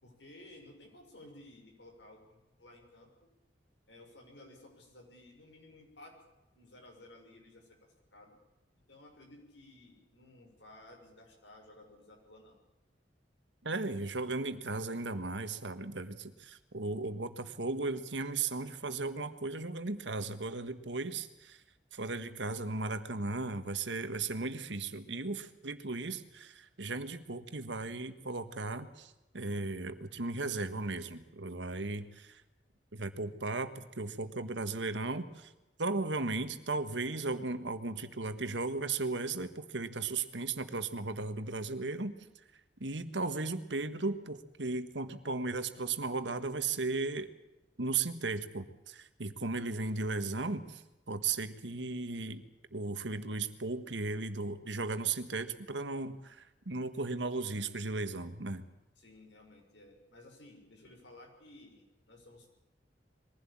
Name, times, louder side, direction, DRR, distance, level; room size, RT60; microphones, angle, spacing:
voice 1, 0.0-3.3 3.9-6.2 6.5-7.7 8.1-8.4 8.9-12.6 59.0-62.5, left 1 dB, 85° left, 2 dB, 6.3 m, -55 dB
voice 2, 13.6-21.6 21.9-32.4 32.9-35.5 35.8-42.1 42.8-47.3 47.8-50.8 51.1-52.4 52.7-58.6, right 3 dB, 80° right, 10 dB, 1.6 m, -36 dB
22.0 x 16.0 x 8.8 m, 0.99 s
head